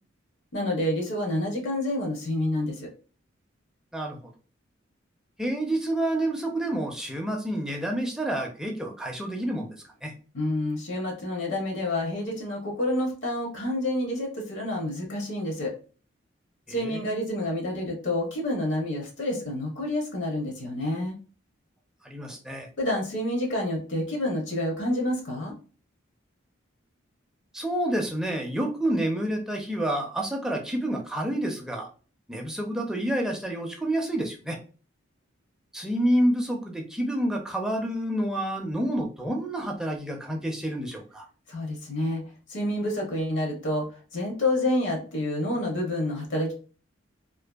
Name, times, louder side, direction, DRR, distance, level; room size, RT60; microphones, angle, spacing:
voice 1, 0.5-2.9 10.3-15.7 16.7-21.1 22.8-25.5 41.5-42.2 42.5-43.9 44.1-46.5, left 1 dB, 65° left, 1 dB, 0.7 m, -28 dB
voice 2, 3.9-4.3 5.4-9.7 10.0-10.1 16.7-17.1 22.0-22.7 27.5-31.9 32.3-34.6 35.7-41.3, right 1 dB, 5° right, 1 dB, 0.4 m, -28 dB
2.5 x 2.4 x 2.2 m, 0.38 s
head